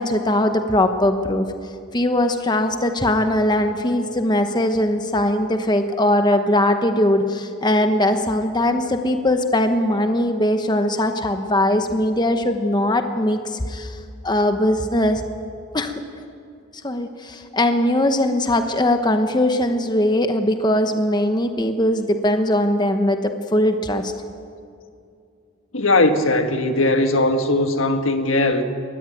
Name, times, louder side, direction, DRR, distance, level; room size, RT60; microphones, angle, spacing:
voice 1, 0.0-1.5 1.9-14.0 14.2-15.2 15.7-16.0 16.8-24.1, left 1 dB, 20° left, 7 dB, 1.0 m, -20 dB
voice 2, 25.7-28.6, left 2 dB, 70° left, 7 dB, 1.7 m, -19 dB
23.0 x 20.0 x 9.2 m, 2.5 s
head